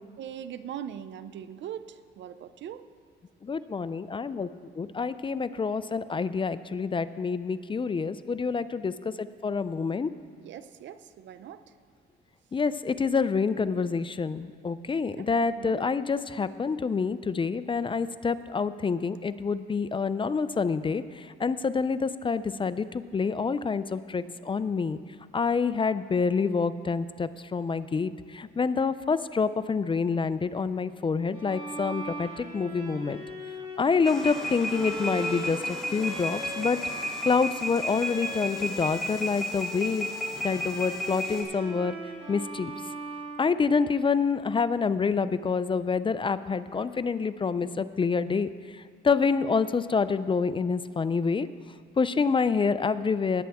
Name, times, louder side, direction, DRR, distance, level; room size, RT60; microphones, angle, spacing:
voice 1, 0.2-2.9 10.3-11.6 15.2-15.3 15.6-15.9, right 9 dB, 65° right, 13 dB, 0.6 m, -41 dB
voice 2, 3.4-4.5 4.8-10.1 12.5-25.0 25.3-33.2 33.8-36.8 37.2-40.1 40.4-41.9 42.3-42.7 43.4-51.5 52.0-53.4, left 5 dB, 25° left, 14 dB, 0.4 m, -27 dB
Bowed string instrument, 31.3-39.2 39.5-44.3, right 1 dB, 30° right, 3.3 m, -40 dB
sound 1, 34.0-41.4, left 1 dB, ahead, 2.8 m, -34 dB
19.0 x 8.8 x 3.5 m, 2.2 s
cardioid pair, 90°, 20 cm